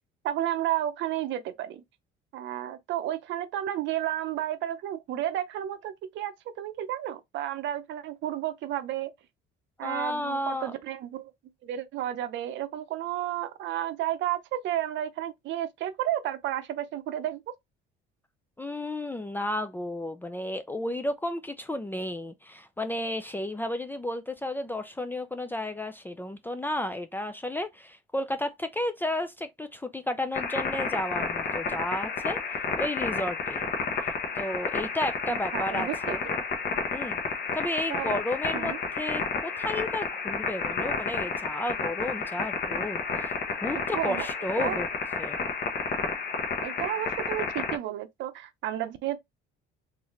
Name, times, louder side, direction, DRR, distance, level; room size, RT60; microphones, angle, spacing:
voice 1, 0.2-1.8 2.3-9.1 9.8-11.3 11.6-17.4 35.3-36.2 37.9-38.2 38.5-38.8 43.9-44.3 44.6-44.8 46.6-49.2, right 12 dB, 60° right, 0.7 m, -32 dB
voice 2, 9.8-10.7 18.6-33.7 34.0-36.2 36.9-37.2 37.5-43.3 43.6-44.9 45.2-45.4, left 1 dB, 10° left, 0.3 m, -33 dB
sound 1, 30.3-47.8, left 5 dB, 50° left, 1.1 m, -31 dB
3.9 x 2.6 x 3.1 m
cardioid pair, 140°, 21 cm